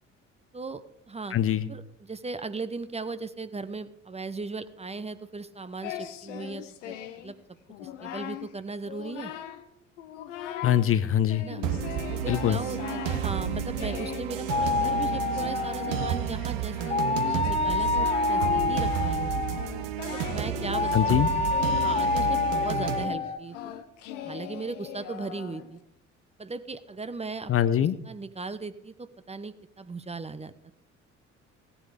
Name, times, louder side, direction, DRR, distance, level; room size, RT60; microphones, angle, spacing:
voice 1, 0.5-1.4 1.7-7.0 7.2-7.3 7.8-9.3 11.4-11.6 12.1-17.0 17.3-19.6 20.1-21.2 21.8-23.7 24.2-25.8 26.4-27.5 27.8-30.7, right 3 dB, 15° right, 13 dB, 0.9 m, -37 dB
voice 2, 1.3-1.7 10.6-11.4 12.3-12.6 20.9-21.3 27.5-28.0, left 10 dB, 35° left, 14 dB, 0.7 m, -23 dB
Singing, 5.8-7.3 7.7-8.5 8.8-9.7 10.0-10.9 11.3-25.8, left 11 dB, 70° left, 1.0 m, -39 dB
sound 1, 11.6-23.0, right 10 dB, 65° right, 1.2 m, -31 dB
sound 2, 14.5-16.2 16.9-19.8 20.7-23.4, left 4 dB, 15° left, 1.2 m, -27 dB
16.5 x 10.0 x 5.0 m, 0.81 s
figure-of-eight pair, 50°, 38 cm